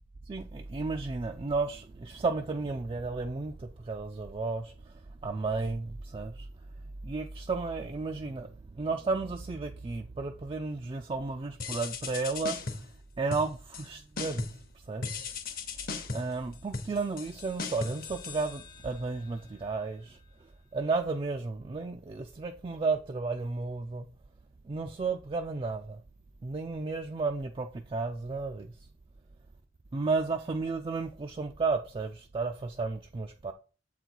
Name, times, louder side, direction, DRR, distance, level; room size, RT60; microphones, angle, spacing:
voice 1, 0.3-4.9 5.2-6.5 7.0-12.6 13.2-14.5 14.9-15.2 16.1-20.2 20.7-24.1 24.7-26.0 26.4-28.7 29.9-33.5, right 4 dB, 25° right, 0.3 m, -33 dB
sound 1, 11.6-13.0 13.3-13.9 14.2-14.7 15.0-19.0, left 4 dB, 50° left, 0.9 m, -38 dB
7.2 x 3.9 x 4.5 m
head